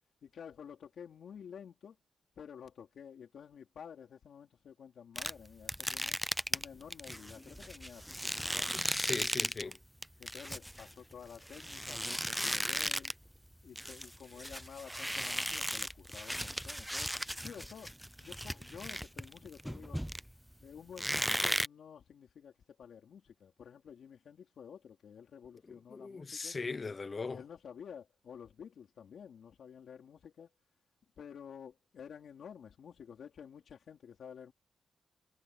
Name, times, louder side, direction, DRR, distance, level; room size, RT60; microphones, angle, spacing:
voice 1, 0.2-2.0 2.4-6.2 6.5-8.8 10.2-13.1 13.6-17.1 17.4-17.9 18.2-20.0 20.6-26.6 27.3-30.5 31.2-34.5, left 7 dB, 65° left, 4.1 m, -51 dB
sound 1, 5.2-9.8 10.0-13.3 13.5-20.5 21.0-21.7, equal, ahead, 0.3 m, -36 dB
voice 2, 8.7-9.8 25.9-27.4, left 4 dB, 30° left, 0.7 m, -39 dB
wide cardioid pair, 165°, 0 cm